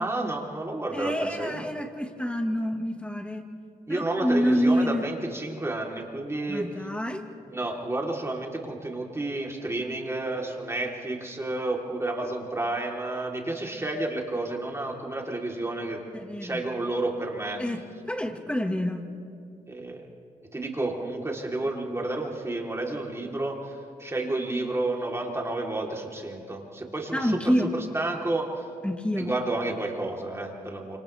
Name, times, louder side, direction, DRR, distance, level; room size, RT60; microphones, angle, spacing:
voice 1, 0.0-1.6 3.9-6.7 7.5-16.0 16.4-17.6 19.7-20.0 20.5-23.6 24.0-28.6 29.2-31.0, right 2 dB, 20° right, -1 dB, 3.8 m, -31 dB
voice 2, 0.9-3.5 3.9-5.1 6.5-7.3 16.1-16.6 17.6-19.0 27.1-27.7 28.8-29.3, equal, 10° left, 5 dB, 1.9 m, -27 dB
28.5 x 27.5 x 3.6 m, 2.4 s
cardioid pair, 75°, 14 cm